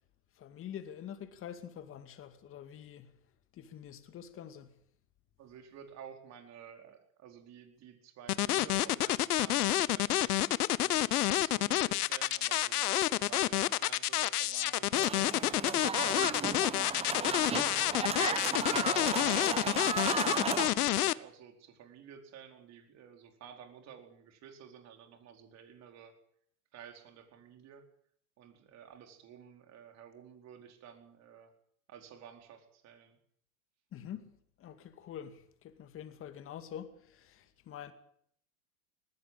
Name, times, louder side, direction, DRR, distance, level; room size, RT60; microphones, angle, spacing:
voice 1, 0.3-3.1 3.5-4.7 33.9-37.9, left 9 dB, 30° left, 2.3 m, -46 dB
voice 2, 5.4-16.6 17.1-20.3 20.8-26.1 26.7-27.8 28.4-31.5 31.9-33.2, right 8 dB, 35° right, 4.7 m, -52 dB
sound 1, 8.3-21.1, left 15 dB, 75° left, 1.0 m, -29 dB
sound 2, 14.9-20.7, right 6 dB, 15° right, 1.1 m, -35 dB
20.0 x 16.0 x 8.9 m
hypercardioid pair, 125°, 46 cm